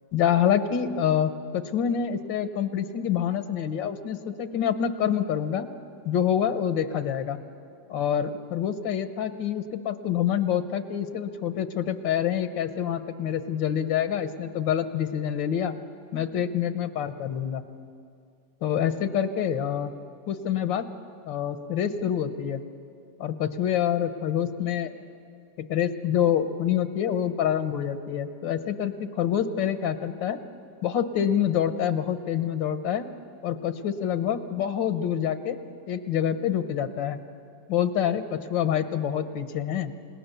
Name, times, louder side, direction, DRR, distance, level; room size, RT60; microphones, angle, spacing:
voice 1, 0.1-5.7 6.0-7.4 7.9-15.7 16.1-17.6 18.6-19.9 20.3-20.9 21.3-22.6 23.2-24.9 25.6-30.4 30.8-33.1 33.4-35.6 35.9-37.2 37.7-39.9, left 9 dB, 90° left, 10 dB, 1.7 m, -26 dB
29.5 x 18.0 x 6.9 m, 2.4 s
omnidirectional pair, 2.0 m